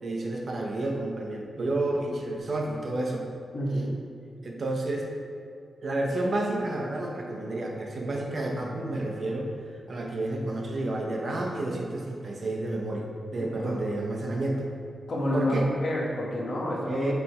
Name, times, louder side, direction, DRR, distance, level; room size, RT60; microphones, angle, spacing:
voice 1, 0.0-3.3 4.4-5.1 5.8-9.5 9.9-14.7 15.3-15.7 16.9-17.1, right 2 dB, 45° right, 0 dB, 0.8 m, -30 dB
voice 2, 3.5-3.9 13.5-13.7 15.1-17.1, equal, 45° left, -4 dB, 1.2 m, -28 dB
7.0 x 3.4 x 4.6 m, 2.3 s
wide cardioid pair, 165°, 0 cm